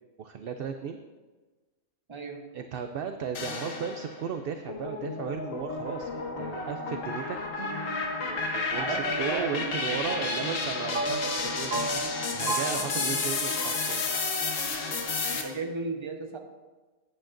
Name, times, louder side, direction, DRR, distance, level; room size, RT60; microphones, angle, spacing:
voice 1, 0.2-1.0 2.5-7.6 8.3-11.8 12.3-14.2, right 7 dB, 60° right, 7 dB, 0.6 m, -36 dB
voice 2, 2.1-2.4 8.7-9.8 11.8-13.0 15.3-16.4, right 4 dB, 25° right, 3 dB, 0.9 m, -36 dB
sound 1, 3.3-4.2 4.7-15.4, left 4 dB, 70° left, 1.5 m, -31 dB
sound 2, 7.6-14.5, right 2 dB, 85° right, 1.4 m, -37 dB
15.0 x 8.7 x 2.6 m, 1.3 s
omnidirectional pair, 1.4 m